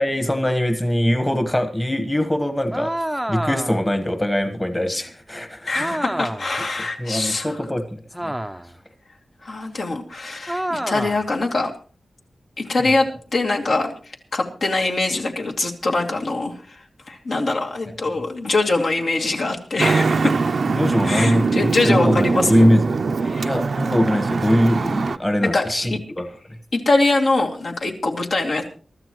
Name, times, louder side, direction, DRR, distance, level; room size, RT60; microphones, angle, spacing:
voice 1, 0.0-2.9 3.3-6.0 7.0-8.3 20.8-23.0 23.4-26.2, equal, 15° left, 7 dB, 1.3 m, -22 dB
sound 1, 2.7-3.9 5.7-6.6 8.1-8.8 10.5-11.3, right 1 dB, 5° right, 0.6 m, -28 dB
voice 2, 5.7-7.6 9.4-11.7 12.6-20.3 21.0-22.7 23.3-23.5 25.4-26.0 26.7-28.7, left 2 dB, 70° left, 0 dB, 2.5 m, -23 dB
Traffic noise roadway noise, 19.8-25.2, right 4 dB, 65° right, 0.6 m, -22 dB
23.0 x 13.5 x 3.1 m, 0.40 s
wide cardioid pair, 140°, 0 cm